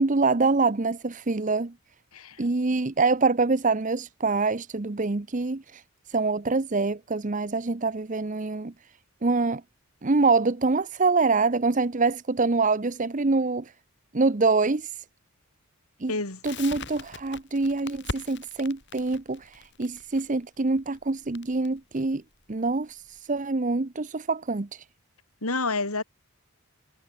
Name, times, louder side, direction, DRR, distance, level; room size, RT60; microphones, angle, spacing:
voice 1, 0.0-1.7 2.4-5.8 6.1-8.7 9.2-9.6 10.0-13.7 14.1-15.0 16.0-16.1 16.4-22.2 22.5-24.8, right 3 dB, 35° right, 0.7 m, -25 dB
voice 2, 2.1-2.4 16.1-16.4 25.4-26.0, left 3 dB, 85° left, 5.4 m, -29 dB
Crackle, 16.4-23.2, left 3 dB, 55° left, 6.2 m, -41 dB
head